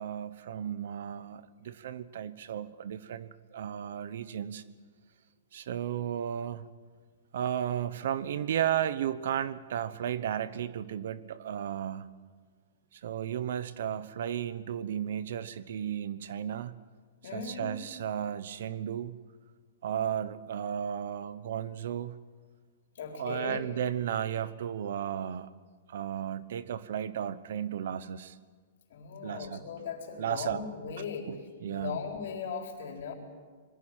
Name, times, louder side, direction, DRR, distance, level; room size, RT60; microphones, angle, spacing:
voice 1, 0.0-4.6 5.5-6.7 7.3-12.1 12.9-16.8 17.3-19.2 19.8-22.2 23.2-25.5 25.9-28.4 29.2-29.6 30.2-30.6 31.3-32.0, right 9 dB, 65° right, 16 dB, 1.0 m, -34 dB
voice 2, 17.2-17.7 22.9-23.7 28.9-31.3 31.7-33.1, left 6 dB, 60° left, 3 dB, 4.2 m, -38 dB
21.5 x 15.5 x 9.2 m, 1.5 s
hypercardioid pair, 165°, 0 cm